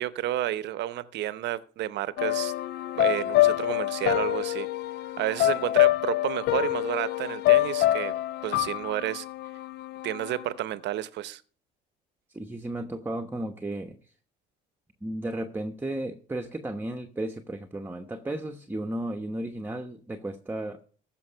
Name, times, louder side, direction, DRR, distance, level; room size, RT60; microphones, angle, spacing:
voice 1, 0.0-2.5 3.0-4.7 5.2-8.1 8.4-9.2 10.0-11.4, right 13 dB, 60° right, 0.8 m, -31 dB
sound 1, 2.2-10.4, left 15 dB, 60° left, 0.6 m, -26 dB
voice 2, 12.3-14.0 15.0-20.8, right 1 dB, 10° right, 0.9 m, -34 dB
14.5 x 6.0 x 5.5 m
supercardioid pair, 90°, 20 cm